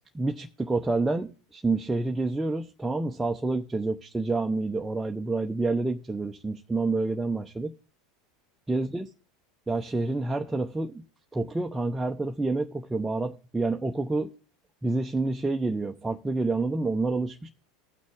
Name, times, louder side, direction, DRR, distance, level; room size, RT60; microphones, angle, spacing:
voice 1, 0.1-7.7 8.7-9.1 9.7-11.1 11.3-14.3 14.8-17.5, right 3 dB, 10° right, 0.8 m, -28 dB
18.5 x 6.4 x 3.7 m
hypercardioid pair, 80°, 0 cm